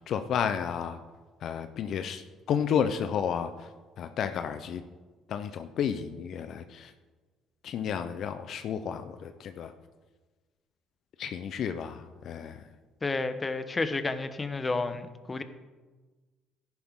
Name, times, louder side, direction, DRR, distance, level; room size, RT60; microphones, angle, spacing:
voice 1, 0.1-1.0 1.4-2.2 2.5-3.5 4.0-4.8 5.3-6.9 7.6-9.7 11.2-12.6, left 8 dB, 65° left, 9 dB, 0.8 m, -31 dB
voice 2, 13.0-15.4, left 3 dB, 30° left, 10 dB, 1.2 m, -31 dB
14.0 x 11.0 x 3.8 m, 1.3 s
supercardioid pair, 65°, 0 cm